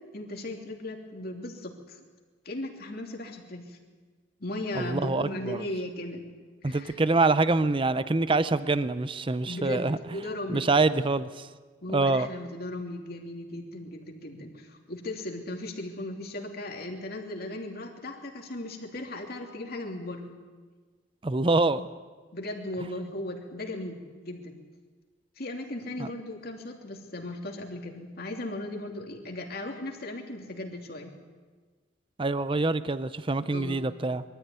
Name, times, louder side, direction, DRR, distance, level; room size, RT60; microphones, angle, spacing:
voice 1, 0.1-2.0 2.4-3.8 4.4-6.2 6.6-7.0 9.5-10.7 11.8-20.4 22.3-24.5 25.4-31.1 33.5-33.8, left 1 dB, 55° left, 2 dB, 2.9 m, -37 dB
voice 2, 4.7-5.6 6.6-10.0 10.5-11.5 11.9-12.3 21.2-21.9 26.0-26.1 32.2-34.2, right 3 dB, 25° right, 14 dB, 0.6 m, -25 dB
23.0 x 14.0 x 9.5 m, 1.4 s
head